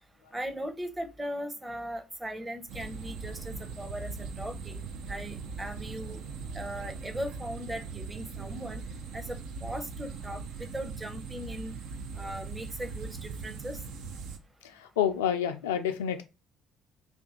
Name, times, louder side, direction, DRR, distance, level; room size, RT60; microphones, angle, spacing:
voice 1, 0.3-4.8 5.1-6.2 6.5-8.8 9.1-11.7 12.2-13.8, equal, 15° right, 6 dB, 0.7 m, -38 dB
sound 1, 2.7-14.4, right 5 dB, 65° right, 0.5 m, -40 dB
voice 2, 14.6-16.2, left 9 dB, 80° left, 8 dB, 0.4 m, -29 dB
2.9 x 2.6 x 3.5 m, 0.27 s
hypercardioid pair, 55°, 0 cm